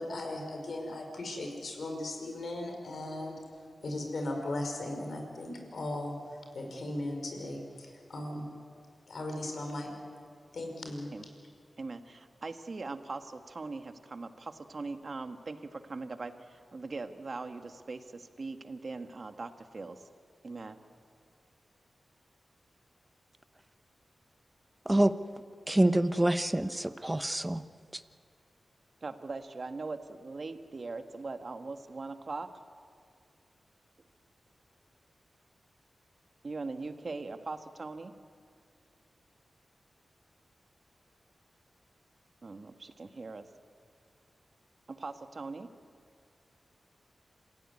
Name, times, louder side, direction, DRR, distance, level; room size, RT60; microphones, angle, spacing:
voice 1, 0.0-3.4 3.8-8.4 9.1-9.9 10.5-11.1, left 1 dB, 75° left, 3 dB, 5.2 m, -37 dB
voice 2, 11.8-20.1 20.4-20.8 29.0-32.5 36.4-38.1 42.4-43.4 44.9-45.7, right 3 dB, 55° right, 8 dB, 1.6 m, -41 dB
voice 3, 25.7-27.6 27.9-28.0, right 1 dB, 15° right, 11 dB, 1.1 m, -26 dB
27.0 x 16.0 x 9.7 m, 2.1 s
cardioid pair, 60°, 0 cm